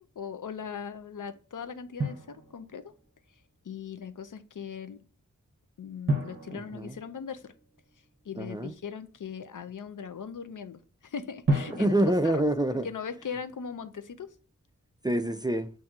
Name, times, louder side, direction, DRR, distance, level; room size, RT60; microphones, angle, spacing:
voice 1, 0.0-2.9 3.6-5.0 5.8-7.5 8.2-11.9 12.2-12.3 12.7-14.3, left 6 dB, 75° left, 0.5 m, -39 dB
Drum, 2.0-3.1 6.1-7.9 11.5-13.5, right 1 dB, 40° right, 0.7 m, -33 dB
voice 2, 6.5-6.9 8.4-8.7 11.8-12.9 15.0-15.7, right 1 dB, 15° right, 0.3 m, -26 dB
7.1 x 2.6 x 2.3 m
wide cardioid pair, 50°, 32 cm